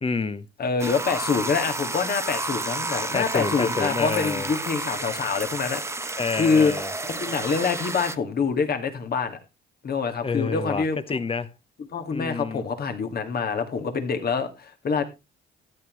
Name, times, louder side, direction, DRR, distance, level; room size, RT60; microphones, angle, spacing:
voice 1, 0.0-0.5 3.1-4.5 6.2-6.9 10.2-11.5 12.1-12.6, left 4 dB, 30° left, 1.0 m, -28 dB
voice 2, 0.6-6.7 7.0-9.4 9.8-11.0 11.9-15.0, left 5 dB, 50° left, 2.1 m, -26 dB
sound 1, 0.8-8.2, right 2 dB, 15° right, 0.9 m, -31 dB
13.0 x 9.5 x 3.1 m
cardioid pair, 90°, 20 cm